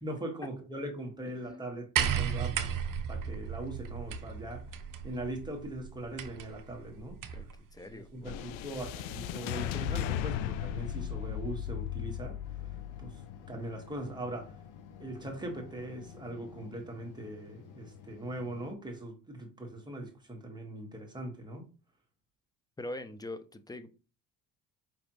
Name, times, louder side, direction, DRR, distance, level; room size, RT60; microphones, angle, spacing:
voice 1, 0.0-2.7 3.1-4.7 5.0-7.2 7.9-12.4 13.0-13.2 13.5-14.5 15.0-21.6, right 1 dB, 10° right, 1 dB, 1.7 m, -40 dB
sound 1, 2.0-7.6 8.6-8.7, right 8 dB, 45° right, 0.8 m, -35 dB
voice 2, 7.7-8.5 22.8-24.0, left 1 dB, 10° left, 10 dB, 0.5 m, -42 dB
sound 2, 8.2-16.6, left 10 dB, 80° left, 0.5 m, -37 dB
sound 3, 12.4-18.7, left 6 dB, 45° left, 0.9 m, -53 dB
5.3 x 3.2 x 3.1 m, 0.34 s
supercardioid pair, 75°, 45 cm